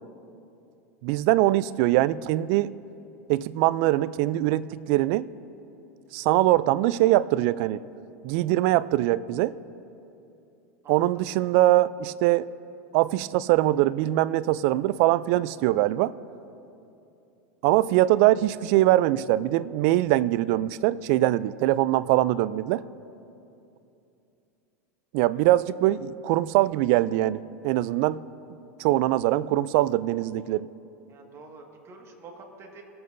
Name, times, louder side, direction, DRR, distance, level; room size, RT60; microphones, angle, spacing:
voice 1, 1.0-2.7 3.3-5.3 6.1-7.8 8.2-9.5 10.9-12.5 12.9-16.1 17.6-22.8 25.1-28.2 28.8-30.7, right 15 dB, 60° right, 18 dB, 0.4 m, -22 dB
voice 2, 31.1-32.8, right 3 dB, 35° right, 1 dB, 1.8 m, -47 dB
22.0 x 7.8 x 2.6 m, 2.8 s
hypercardioid pair, 100°, 8 cm